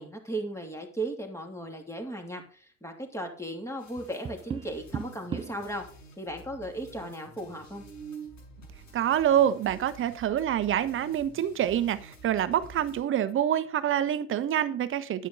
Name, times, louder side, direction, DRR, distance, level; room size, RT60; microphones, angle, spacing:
voice 1, 0.0-5.8 6.2-7.8, right 1 dB, 5° left, 2.9 m, -36 dB
sound 1, 3.8-13.0, right 1 dB, 85° left, 6.8 m, -51 dB
Tap, 4.0-5.7 7.7-8.4, right 7 dB, 15° right, 0.5 m, -38 dB
voice 2, 8.9-15.3, right 10 dB, 30° right, 1.0 m, -26 dB
10.0 x 9.4 x 4.1 m
hypercardioid pair, 90°, 39 cm